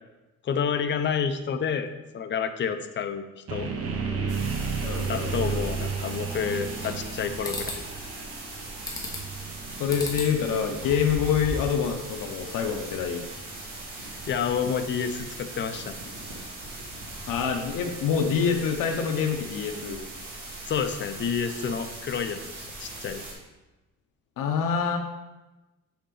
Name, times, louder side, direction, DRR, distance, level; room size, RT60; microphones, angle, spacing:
voice 1, 0.4-1.9 2.1-3.7 5.1-7.8 14.0-15.9 20.6-23.2, left 7 dB, 35° left, 9 dB, 0.5 m, -29 dB
sound 1, 3.5-15.4, right 5 dB, 45° right, 0.8 m, -34 dB
sound 2, 4.3-23.3, right 2 dB, 65° right, 2.0 m, -40 dB
voice 2, 4.8-5.6 9.8-13.2 17.3-20.0 24.4-25.0, left 7 dB, 75° left, 3 dB, 0.7 m, -26 dB
sound 3, 6.5-7.1 7.4-7.8 8.9-9.4 9.9-10.3 10.7-11.7, left 1 dB, 10° left, 1.1 m, -35 dB
7.0 x 5.0 x 3.8 m, 1.1 s
cardioid pair, 170°, 33 cm